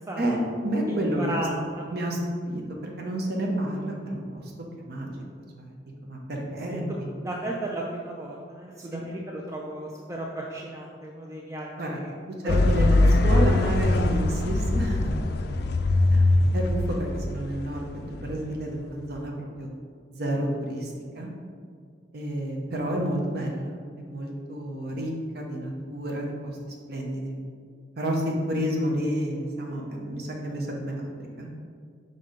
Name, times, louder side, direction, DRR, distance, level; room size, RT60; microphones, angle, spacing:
voice 1, 0.0-0.5 0.9-1.8 6.7-6.8 7.2-12.1 12.4-12.6 13.0-13.5, right 1 dB, 15° right, -2 dB, 0.4 m, -35 dB
voice 2, 0.6-1.5 1.9-2.2 2.5-4.5 4.9-5.1 5.6-5.7 6.0-7.1 8.9-9.0 11.8-12.0 12.4-15.3 16.1-19.7 20.1-21.3 22.1-26.6 26.9-27.3 28.0-31.1 31.4-31.5, right 1 dB, 60° right, -1 dB, 0.8 m, -30 dB
sound 1, 12.5-18.8, left 2 dB, 60° left, 0.4 m, -22 dB
5.6 x 3.8 x 5.2 m, 2.1 s
head